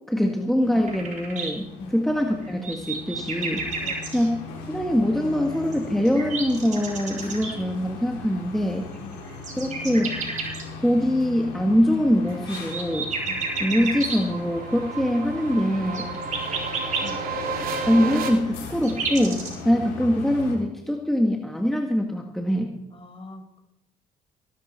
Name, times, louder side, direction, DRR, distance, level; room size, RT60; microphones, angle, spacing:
voice 1, 0.0-1.7 1.9-3.7 4.1-4.3 4.7-8.9 9.6-10.2 10.8-13.1 13.6-16.1 17.9-22.7, equal, ahead, 1 dB, 2.2 m, -23 dB
sound 1, 0.6-20.6, left 4 dB, 85° left, 4.1 m, -39 dB
sound 2, 0.9-1.5 2.3-4.3 5.5-7.5 8.9-10.6 12.2-14.2 15.8-17.1 18.2-19.6, right 4 dB, 50° right, 6.8 m, -31 dB
voice 2, 3.8-4.3 9.0-9.3 13.2-13.5 17.0-17.3 20.0-20.1 22.9-23.6, left 3 dB, 35° left, 4 dB, 5.3 m, -43 dB
sound 3, 11.7-18.3, right 4 dB, 65° right, 2.9 m, -33 dB
19.5 x 12.0 x 4.5 m, 0.81 s
supercardioid pair, 60°, 16 cm